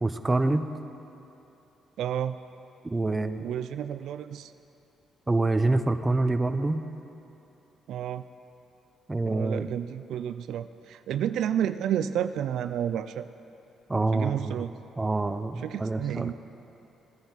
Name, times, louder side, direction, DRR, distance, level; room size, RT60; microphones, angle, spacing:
voice 1, 0.0-0.7 2.8-3.4 5.3-6.8 9.1-9.7 13.9-14.6 15.0-16.3, right 2 dB, 20° right, 9 dB, 0.6 m, -26 dB
voice 2, 2.0-2.4 3.4-4.5 7.9-8.2 9.2-13.3 14.1-14.7 15.6-16.3, right 10 dB, 80° right, 12 dB, 0.3 m, -30 dB
17.5 x 10.0 x 4.1 m, 2.9 s
cardioid pair, 90°, 0 cm